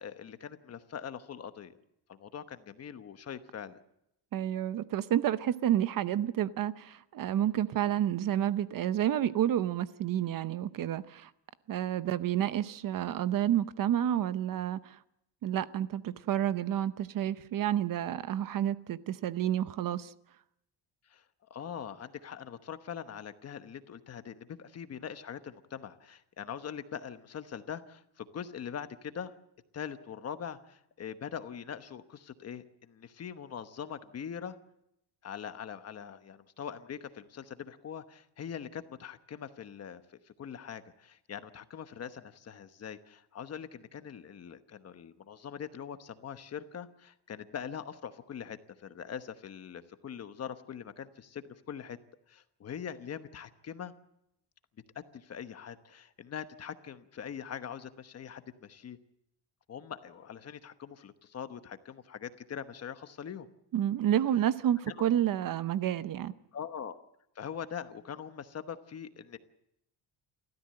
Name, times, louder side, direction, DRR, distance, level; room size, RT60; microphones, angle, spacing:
voice 1, 0.0-1.8 2.1-3.8 21.1-21.2 21.5-29.3 29.7-34.6 35.2-52.0 52.3-53.9 54.9-59.0 59.7-63.5 64.9-65.0 66.5-67.0 67.4-69.4, left 8 dB, 35° left, 1.1 m, -42 dB
voice 2, 4.3-11.3 11.7-15.0 15.4-20.1 63.7-66.3, right 11 dB, 50° right, 0.8 m, -30 dB
29.0 x 14.0 x 7.6 m
cardioid pair, 170°, 42 cm